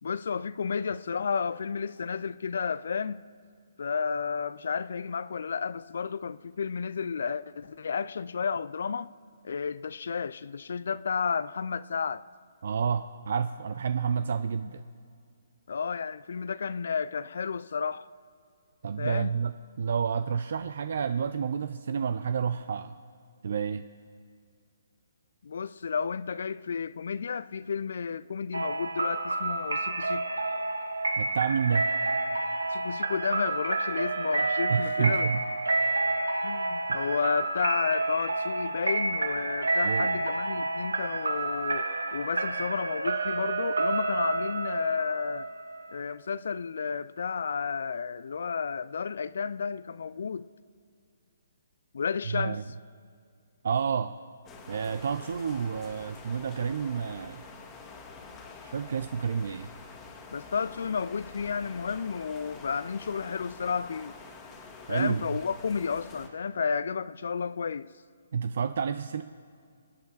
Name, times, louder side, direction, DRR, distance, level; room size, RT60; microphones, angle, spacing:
voice 1, 0.0-3.2 3.8-9.1 9.4-12.2 15.7-18.1 19.0-19.3 25.4-30.4 32.7-35.3 36.4-45.5 45.9-50.5 51.9-52.6 60.3-64.2 64.9-67.9, left 6 dB, 65° left, 0.3 m, -32 dB
voice 2, 12.6-14.8 18.8-23.0 23.4-23.8 31.2-31.9 34.7-35.4 36.9-37.0 39.8-40.1 52.3-52.6 53.6-54.2 54.7-57.4 58.6-59.7 64.9-65.3 68.3-69.2, right 6 dB, 60° right, 0.4 m, -29 dB
sound 1, 28.5-46.1, right 2 dB, 85° right, 1.0 m, -29 dB
sound 2, 54.4-66.3, left 4 dB, 20° left, 1.8 m, -47 dB
24.0 x 8.6 x 4.0 m
figure-of-eight pair, 140°, 0 cm